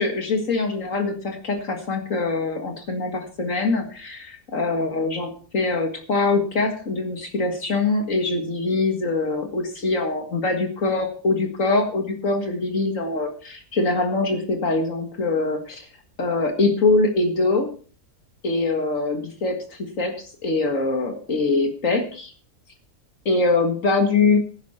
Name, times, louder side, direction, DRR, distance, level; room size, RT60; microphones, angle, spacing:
voice 1, 0.0-15.9 16.2-17.7 18.4-22.3 23.3-24.4, left 3 dB, 60° left, 4 dB, 2.2 m, -23 dB
14.5 x 11.5 x 4.3 m, 0.40 s
omnidirectional pair, 1.5 m